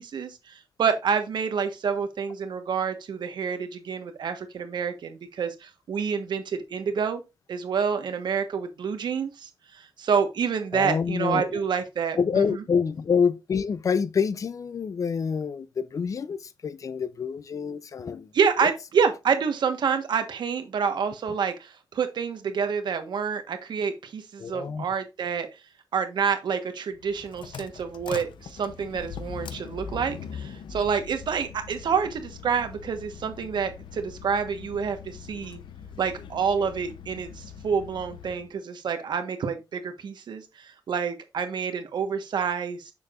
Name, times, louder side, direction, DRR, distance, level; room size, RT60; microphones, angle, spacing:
voice 1, 0.0-7.2 7.5-12.4 18.3-25.5 25.9-35.6 36.0-42.9, right 6 dB, 65° right, 1.3 m, -28 dB
voice 2, 10.7-11.6 12.2-18.3 18.6-18.7 24.4-24.9, left 6 dB, 45° left, 0.6 m, -27 dB
sound 1, 26.9-38.5, left 7 dB, 80° left, 0.7 m, -42 dB
6.9 x 6.5 x 2.5 m
wide cardioid pair, 155°, 8 cm